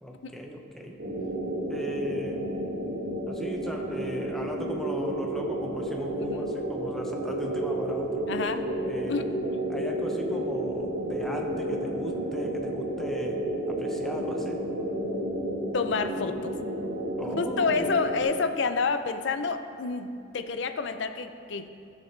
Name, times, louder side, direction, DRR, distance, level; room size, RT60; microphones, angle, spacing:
voice 1, 0.0-1.0 1.7-2.5 3.3-8.3 8.8-9.3 9.7-13.4 13.7-14.6 17.2-18.3, equal, ahead, 0 dB, 0.7 m, -37 dB
sound 1, 1.0-18.2, right 1 dB, 70° right, 1.1 m, -31 dB
voice 2, 8.3-8.6 9.1-9.3 15.7-16.6 17.2-21.7, left 4 dB, 65° left, 9 dB, 0.5 m, -29 dB
13.0 x 6.8 x 3.3 m, 2.6 s
head